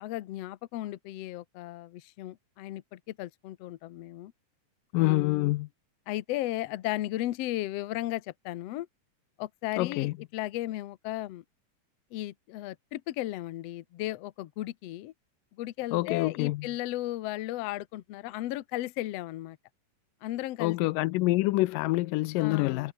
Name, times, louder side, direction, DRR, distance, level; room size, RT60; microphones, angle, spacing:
voice 1, 0.0-4.3 4.9-5.5 6.1-8.9 9.4-11.4 12.1-15.1 15.6-19.6 20.2-20.8 22.4-22.9, left 15 dB, 70° left, 1.6 m, -35 dB
voice 2, 4.9-5.7 9.8-10.1 15.9-16.7 20.6-22.9, left 20 dB, 85° left, 2.3 m, -26 dB
omnidirectional pair, 3.8 m